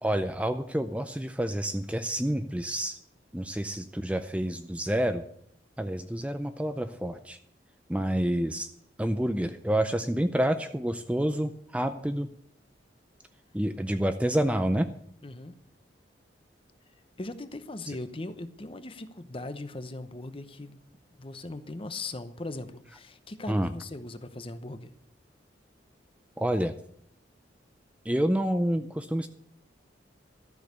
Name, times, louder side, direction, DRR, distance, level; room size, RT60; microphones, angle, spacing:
voice 1, 0.0-3.0 3.3-5.2 5.8-7.4 7.9-8.7 9.0-12.3 13.5-14.9 23.5-23.7 26.4-26.7 28.0-29.3, right 1 dB, 5° right, 9 dB, 0.4 m, -28 dB
voice 2, 15.2-15.6 17.2-20.8 21.2-24.9, left 2 dB, 30° left, 11 dB, 0.8 m, -39 dB
13.0 x 6.5 x 8.1 m, 0.71 s
head